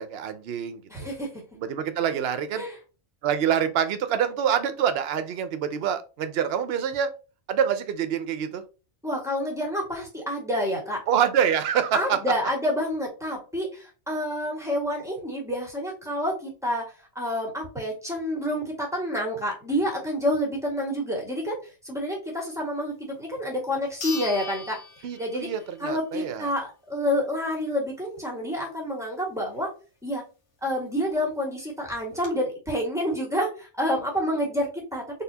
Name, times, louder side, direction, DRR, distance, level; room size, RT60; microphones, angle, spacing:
voice 1, 0.0-1.1 1.6-2.7 3.2-7.1 7.5-8.6 11.1-12.2 25.0-26.5, right 8 dB, 65° right, 11 dB, 0.8 m, -26 dB
voice 2, 0.9-1.4 2.5-2.7 9.0-11.0 11.9-16.9 17.1-21.6 21.8-24.8 25.2-25.5 25.8-29.7 30.0-30.2 30.6-35.0, equal, 5° right, -2 dB, 1.6 m, -28 dB
sound 1, 23.2-23.3 24.0-25.8 26.2-26.3 30.9-31.0 31.2-31.3 31.8-32.3, left 5 dB, 80° left, 1.5 m, -38 dB
4.1 x 3.5 x 2.8 m, 0.33 s
omnidirectional pair, 1.2 m